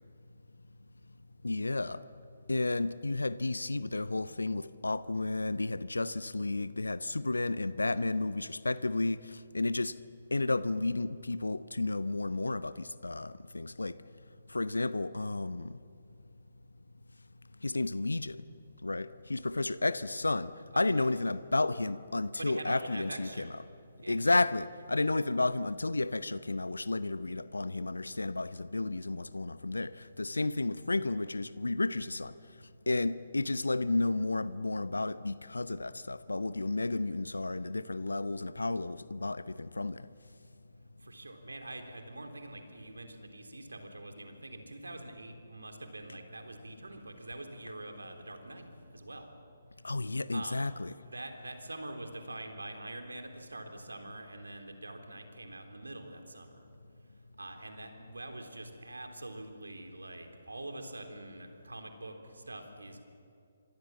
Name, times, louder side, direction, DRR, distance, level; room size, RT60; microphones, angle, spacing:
voice 1, 1.4-2.0 2.5-9.9 10.3-13.9 14.5-15.7 17.6-18.4 18.8-23.5 24.1-32.3 32.9-40.0 49.8-50.9, left 2 dB, 75° left, 0.8 m, -32 dB
voice 2, 20.7-21.1 22.4-23.6 24.0-24.2 41.0-48.7 48.9-49.3 50.3-50.7 51.0-56.6 57.4-63.0, right 2 dB, 70° right, 3.7 m, -44 dB
29.0 x 25.0 x 7.4 m
figure-of-eight pair, 135°, 0 cm